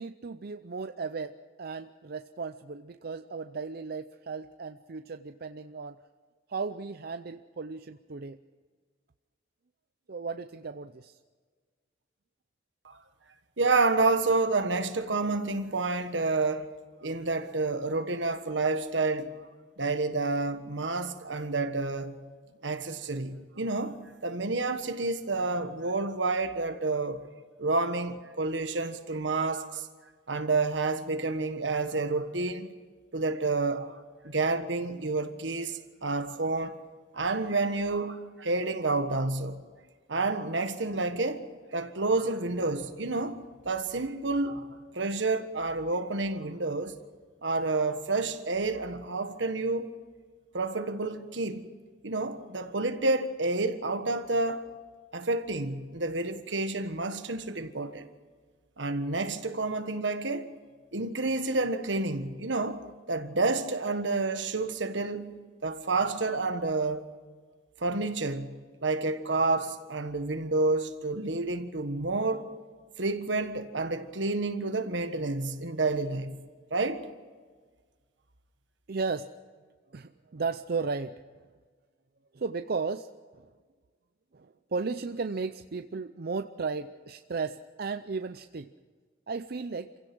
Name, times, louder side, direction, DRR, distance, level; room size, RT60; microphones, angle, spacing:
voice 1, 0.0-1.3 1.6-6.0 6.5-8.4 10.1-11.2 78.9-79.3 79.9-81.5 82.3-83.5 84.3-88.7 89.3-89.9, right 4 dB, 55° right, 0.6 m, -35 dB
voice 2, 13.6-16.7 17.0-19.3 19.8-22.2 22.6-27.3 27.6-29.9 30.3-32.7 33.1-36.8 37.1-39.6 40.1-47.0 47.4-49.9 50.5-51.7 52.0-54.6 55.1-58.1 58.8-60.5 60.9-67.0 67.8-68.5 68.8-72.5 73.0-76.4 76.7-77.1, right 3 dB, 75° right, 1.5 m, -29 dB
27.5 x 16.5 x 6.2 m
head